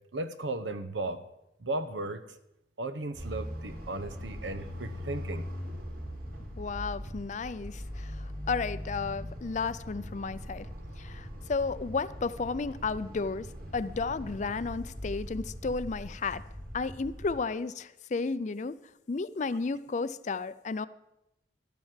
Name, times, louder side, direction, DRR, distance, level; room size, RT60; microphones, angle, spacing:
voice 1, 0.1-1.2 1.6-2.2 2.8-5.5, right 2 dB, 85° right, 11 dB, 0.9 m, -35 dB
sound 1, 3.1-17.4, equal, 55° right, 2.2 m, -41 dB
voice 2, 6.6-10.7 11.0-13.5 13.7-16.4 16.7-18.8 19.1-20.9, left 4 dB, 40° left, 16 dB, 0.4 m, -33 dB
12.5 x 7.1 x 7.5 m, 0.88 s
head